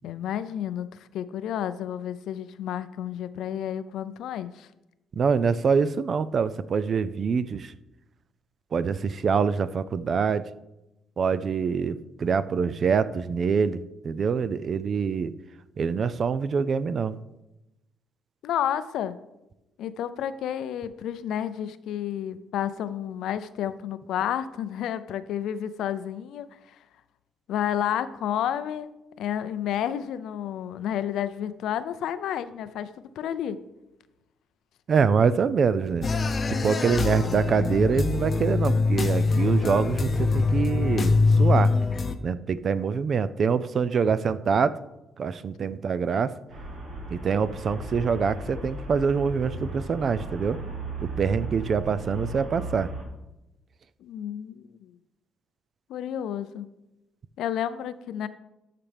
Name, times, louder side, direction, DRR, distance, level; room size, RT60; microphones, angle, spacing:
voice 1, 0.0-4.7 18.4-19.2 19.8-26.8 27.5-28.9 29.2-33.6 54.0-54.9 55.9-56.7 57.4-58.3, left 10 dB, 80° left, 14 dB, 0.5 m, -31 dB
voice 2, 5.1-7.7 8.7-10.5 11.2-15.3 15.8-17.2 34.9-36.1 36.6-41.7 42.2-44.8 45.2-46.3 47.1-50.6 51.0-52.9, right 6 dB, 50° right, 15 dB, 0.4 m, -25 dB
sound 1, 36.0-42.2, left 4 dB, 40° left, 0.7 m, -23 dB
Traffic noise roadway noise, 46.5-53.0, right 2 dB, 80° right, 3.2 m, -36 dB
13.0 x 5.8 x 3.4 m, 0.95 s
cardioid pair, 90°, 0 cm